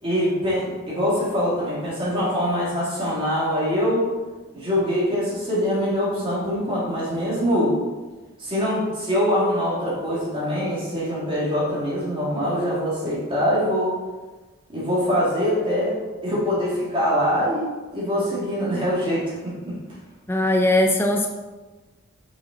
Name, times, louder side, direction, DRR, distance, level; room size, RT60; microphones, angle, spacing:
voice 1, 0.0-4.1 4.5-7.7 8.4-14.0 14.7-19.7, equal, 25° right, -6 dB, 2.2 m, -23 dB
voice 2, 20.3-21.3, left 1 dB, 10° left, 2 dB, 0.4 m, -19 dB
5.9 x 5.7 x 3.9 m, 1.3 s
head